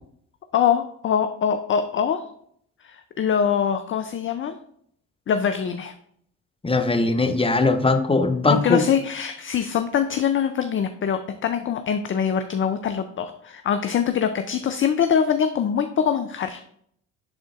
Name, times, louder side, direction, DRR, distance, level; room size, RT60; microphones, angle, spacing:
voice 1, 0.5-2.2 2.8-4.5 5.3-5.9 8.5-16.6, left 8 dB, 30° left, 8 dB, 0.4 m, -23 dB
voice 2, 6.6-8.8, left 3 dB, 15° left, 6 dB, 0.8 m, -20 dB
10.5 x 3.7 x 2.4 m, 0.68 s
hypercardioid pair, 50°, 44 cm